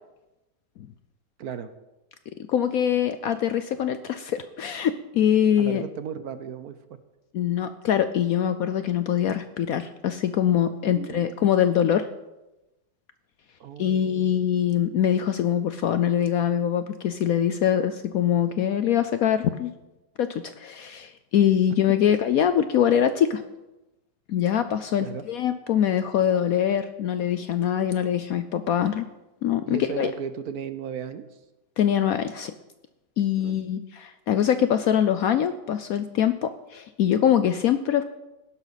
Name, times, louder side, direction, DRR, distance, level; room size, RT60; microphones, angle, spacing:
voice 1, 1.4-1.7 5.6-6.8 10.8-11.3 13.6-14.4 25.0-25.3 29.6-31.2 33.4-33.6, right 7 dB, 65° right, 11 dB, 1.1 m, -35 dB
voice 2, 2.5-5.8 7.3-12.1 13.8-19.7 20.2-23.4 24.3-29.0 29.4-30.1 31.8-32.5 33.2-38.0, left 9 dB, 65° left, 11 dB, 0.9 m, -23 dB
16.0 x 11.5 x 4.1 m, 0.99 s
omnidirectional pair, 1.9 m